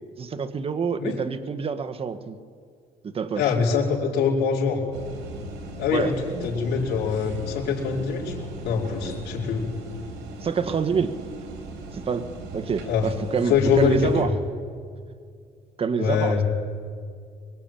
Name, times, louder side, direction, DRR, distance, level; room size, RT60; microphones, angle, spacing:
voice 1, 0.2-2.4 3.0-3.5 5.9-6.1 10.4-11.1 11.9-12.3 12.5-14.3 15.8-16.4, right 6 dB, 35° right, 10 dB, 1.5 m, -27 dB
voice 2, 3.3-4.8 5.8-8.3 8.6-9.7 12.9-13.1 13.5-14.1 16.0-16.4, left 6 dB, 75° left, -4 dB, 4.5 m, -23 dB
sound 1, 4.9-14.2, right 2 dB, 85° right, 4.3 m, -38 dB
23.0 x 23.0 x 9.0 m, 2.2 s
cardioid pair, 110°, 17 cm